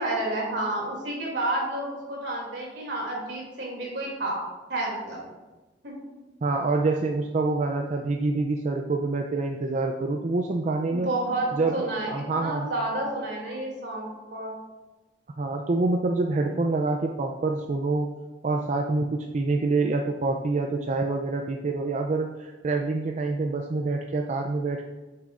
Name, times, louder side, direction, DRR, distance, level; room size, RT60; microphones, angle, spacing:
voice 1, 0.0-4.4 4.7-5.2 5.8-6.0 10.9-14.5, right 2 dB, 80° right, -2 dB, 2.6 m, -30 dB
voice 2, 6.4-11.1 11.5-12.7 15.4-18.1 18.4-24.8, right 3 dB, 45° right, 3 dB, 0.4 m, -26 dB
8.8 x 6.9 x 2.5 m, 1.2 s
head